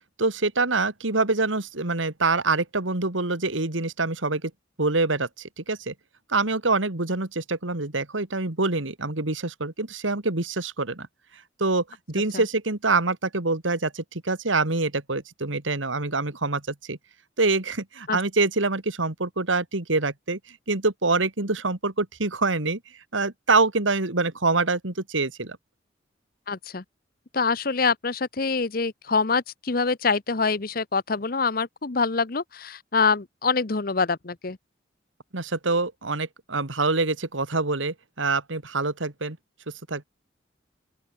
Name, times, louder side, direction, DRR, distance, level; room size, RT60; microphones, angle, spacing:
voice 1, 0.2-4.5 4.8-5.9 6.3-11.1 11.6-17.0 17.4-22.8 23.1-25.6 35.3-39.4 39.9-40.0, right 3 dB, 90° right, 2.3 m, -25 dB
voice 2, 26.5-26.8 27.3-34.6, left 4 dB, 50° left, 0.9 m, -25 dB
open air
head